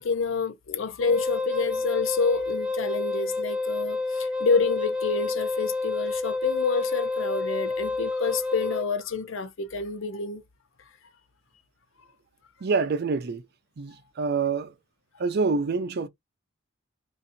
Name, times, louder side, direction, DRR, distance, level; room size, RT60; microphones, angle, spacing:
voice 1, 0.0-10.4, left 4 dB, 70° left, 0.6 m, -28 dB
Wind instrument woodwind instrument, 1.0-8.9, left 3 dB, 5° right, 0.5 m, -29 dB
voice 2, 12.6-13.4 13.8-14.7 15.2-16.1, right 4 dB, 55° right, 0.5 m, -26 dB
3.9 x 2.6 x 2.6 m
head